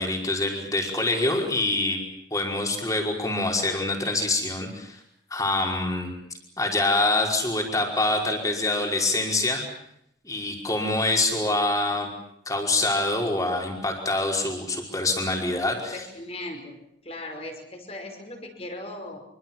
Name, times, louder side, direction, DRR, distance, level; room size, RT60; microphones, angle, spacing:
voice 1, 0.0-2.0 2.3-5.0 5.3-6.1 6.6-9.6 10.2-12.1 12.5-16.0, left 2 dB, 20° left, 1 dB, 5.3 m, -25 dB
voice 2, 15.9-16.8 17.0-19.2, left 1 dB, 35° left, 4 dB, 5.5 m, -38 dB
25.5 x 25.5 x 7.5 m, 0.74 s
head